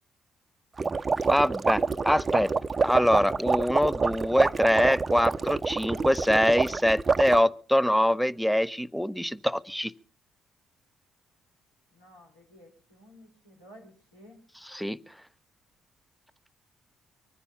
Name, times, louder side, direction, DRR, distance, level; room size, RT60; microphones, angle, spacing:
sound 1, 0.8-7.4, right 4 dB, 35° right, 0.7 m, -27 dB
voice 1, 1.3-2.5 2.8-9.9 14.7-15.0, equal, ahead, 0.8 m, -24 dB
voice 2, 11.9-14.4, equal, 90° left, 4.2 m, -53 dB
24.0 x 9.9 x 5.5 m
hypercardioid pair, 45°, 0 cm